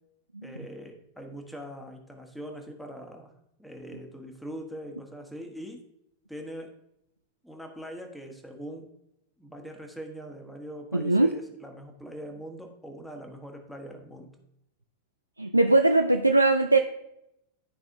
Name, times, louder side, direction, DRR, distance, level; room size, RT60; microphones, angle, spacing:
voice 1, 0.4-3.3 3.6-5.8 6.3-6.7 7.4-8.9 9.4-14.3, equal, ahead, 3 dB, 1.3 m, -42 dB
voice 2, 10.9-11.3 15.4-16.8, right 2 dB, 85° right, 5 dB, 0.4 m, -20 dB
12.0 x 4.9 x 2.7 m, 0.81 s
figure-of-eight pair, 90°, 0 cm